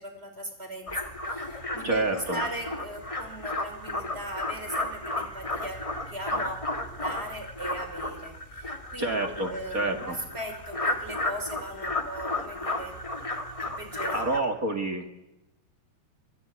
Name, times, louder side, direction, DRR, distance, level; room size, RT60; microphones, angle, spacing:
voice 1, 0.0-5.8 6.1-6.6 6.9-13.0 13.6-14.5, right 1 dB, 15° right, 5 dB, 5.3 m, -38 dB
sound 1, 0.9-14.4, left 2 dB, 25° left, 0.6 m, -33 dB
voice 2, 1.8-2.4 9.0-10.0 14.1-15.1, right 2 dB, 40° right, 5 dB, 1.3 m, -28 dB
25.0 x 19.5 x 9.7 m, 0.93 s
omnidirectional pair, 4.6 m